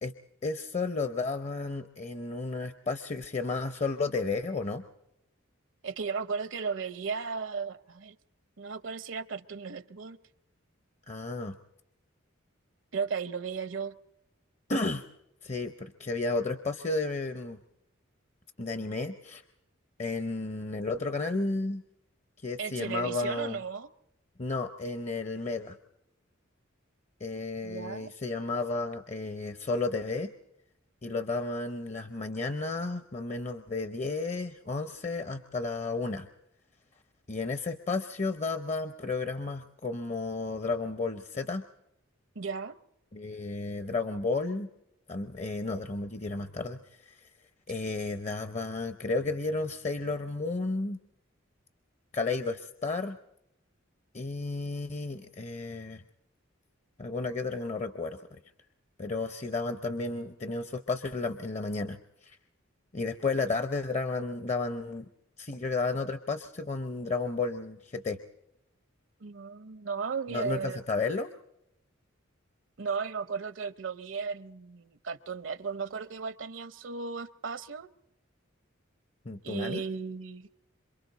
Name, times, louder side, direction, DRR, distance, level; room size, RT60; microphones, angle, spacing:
voice 1, 0.4-4.8 11.1-11.6 14.7-15.0 15.4-17.6 18.6-19.4 20.0-21.8 22.4-23.6 24.4-25.8 27.2-30.3 31.0-36.3 37.3-41.6 43.1-44.7 45.1-47.3 47.7-51.0 52.1-53.2 54.1-56.0 57.0-58.4 59.0-62.4 62.9-65.1 65.4-68.2 70.3-71.3 79.3-79.8, left 3 dB, 35° left, 10 dB, 0.7 m, -32 dB
voice 2, 5.8-8.2 8.6-10.2 12.9-13.9 22.6-23.9 27.6-28.1 42.3-42.8 69.2-70.8 72.8-77.9 79.4-80.5, right 5 dB, 70° right, 15 dB, 0.7 m, -35 dB
27.0 x 24.5 x 4.0 m, 0.83 s
head